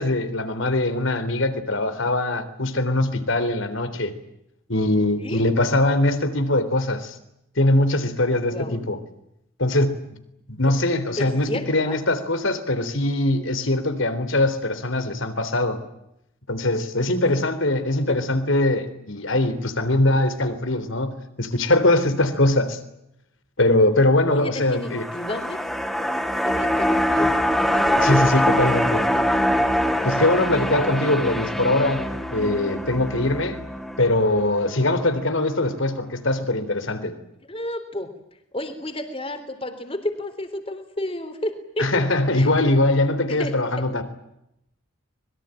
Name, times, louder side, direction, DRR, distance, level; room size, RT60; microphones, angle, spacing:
voice 1, 0.0-4.1 4.7-7.1 7.6-9.0 9.6-10.0 10.5-15.8 16.5-22.8 23.6-25.1 28.0-29.1 30.0-33.6 34.0-37.1 41.8-44.0, left 2 dB, 65° left, 10 dB, 3.6 m, -22 dB
voice 2, 8.5-8.8 10.7-10.8 11.2-12.0 17.3-17.4 18.1-18.2 24.3-25.6 26.4-28.5 29.1-29.3 37.5-38.1 38.5-42.1 42.3-42.5 43.3-43.5, left 1 dB, 25° left, 8 dB, 3.6 m, -31 dB
sound 1, 24.7-35.1 35.5-35.6, equal, ahead, 2.3 m, -23 dB
25.5 x 22.0 x 9.1 m, 0.82 s
head